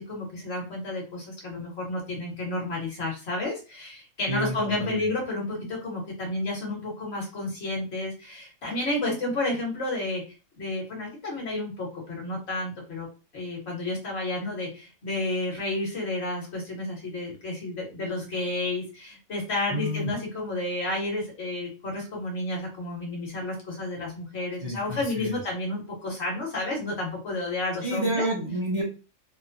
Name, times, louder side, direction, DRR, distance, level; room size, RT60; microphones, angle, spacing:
voice 1, 0.0-10.2 10.6-13.1 13.3-28.3, left 2 dB, 55° left, -2 dB, 1.3 m, -31 dB
voice 2, 4.3-5.1 19.7-20.1 24.6-25.4 27.8-28.8, right 1 dB, 40° right, -3 dB, 0.4 m, -30 dB
2.9 x 2.1 x 2.5 m, 0.32 s
omnidirectional pair, 1.4 m